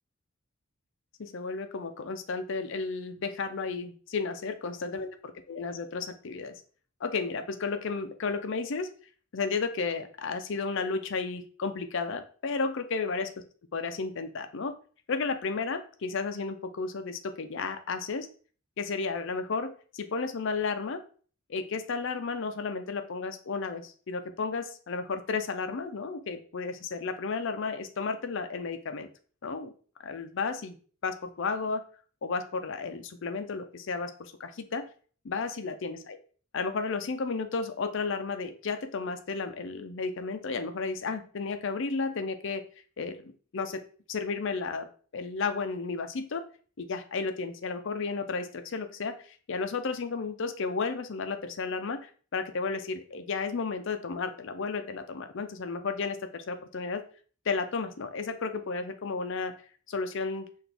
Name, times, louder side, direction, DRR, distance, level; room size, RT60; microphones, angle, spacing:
voice 1, 1.2-6.5 7.0-8.9 9.3-13.3 13.7-14.7 15.1-18.3 18.8-21.0 21.5-29.1 29.4-29.7 30.0-30.8 31.0-31.8 32.2-34.8 35.2-36.2 36.5-42.6 43.0-43.8 44.1-44.9 45.1-46.4 46.8-57.0 57.5-59.5 59.9-60.5, left 4 dB, 65° left, 8 dB, 0.5 m, -33 dB
5.9 x 2.6 x 3.4 m, 0.42 s
head